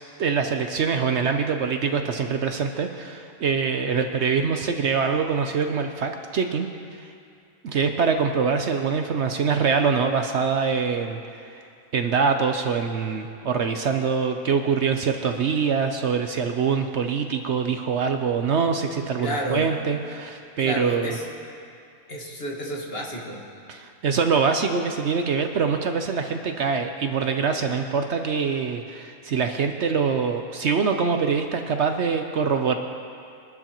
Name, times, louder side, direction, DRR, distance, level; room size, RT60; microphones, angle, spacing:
voice 1, 0.2-6.7 7.0-7.1 7.6-11.6 11.9-21.2 23.7-32.8, right 5 dB, 60° right, 5 dB, 0.7 m, -24 dB
voice 2, 19.2-19.7 20.6-21.2 22.1-23.4, equal, 40° left, -2 dB, 1.9 m, -30 dB
22.5 x 12.0 x 3.0 m, 2.4 s
omnidirectional pair, 1.7 m